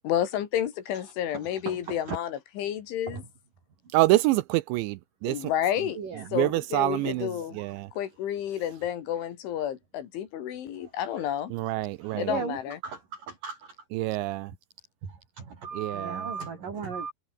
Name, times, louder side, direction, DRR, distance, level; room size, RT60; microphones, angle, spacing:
voice 1, 0.0-3.2 5.2-6.0 6.3-7.6 8.0-11.5 12.2-12.8, left 10 dB, 80° left, 4.9 m, -30 dB
voice 2, 1.3-2.0 3.1-3.2 6.0-6.3 7.6-7.7 11.2-11.3 12.0-12.6 12.8-13.7 15.0-17.1, right 5 dB, 45° right, 6.1 m, -37 dB
voice 3, 3.9-5.5 6.3-7.9 11.5-12.4 13.9-14.5 15.7-16.3, right 18 dB, 80° right, 2.9 m, -27 dB
omnidirectional pair, 5.4 m